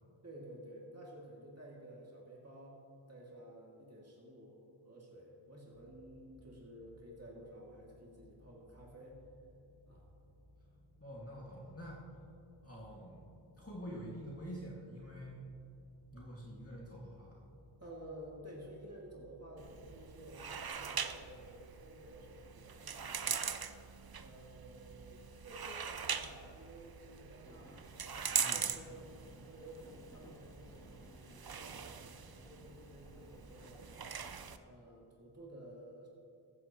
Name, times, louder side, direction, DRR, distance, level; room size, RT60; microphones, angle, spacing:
voice 1, 0.2-2.8 3.1-9.2 9.9-10.1 16.1-16.2 17.8-23.6 24.2-27.9 28.4-34.0 34.6-36.1, right 1 dB, 30° right, -4 dB, 2.3 m, -53 dB
sound 1, 5.7-21.3, left 1 dB, 80° left, 2.3 m, -63 dB
voice 2, 11.0-12.0 12.6-15.5 16.1-17.4 28.4-28.6, equal, 30° left, -5 dB, 2.1 m, -47 dB
sound 2, 19.6-34.6, right 7 dB, 50° right, 0.6 m, -42 dB
sound 3, 27.4-34.7, left 1 dB, 10° left, 0.4 m, -59 dB
15.0 x 13.5 x 3.0 m, 2.7 s
wide cardioid pair, 50°, 49 cm